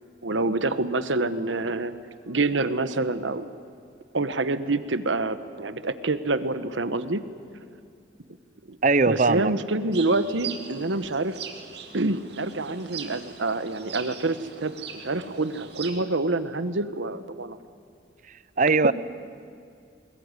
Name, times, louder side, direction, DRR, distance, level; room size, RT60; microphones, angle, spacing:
voice 1, 0.2-2.0 2.3-3.5 4.1-7.2 8.7-8.8 9.1-11.4 11.9-17.6, right 2 dB, 85° right, 12 dB, 1.1 m, -27 dB
voice 2, 8.8-9.6 18.6-18.9, right 3 dB, 40° right, 17 dB, 0.6 m, -20 dB
sound 1, 9.9-16.0, right 7 dB, 60° right, 2.2 m, -41 dB
21.0 x 21.0 x 9.7 m, 2.3 s
head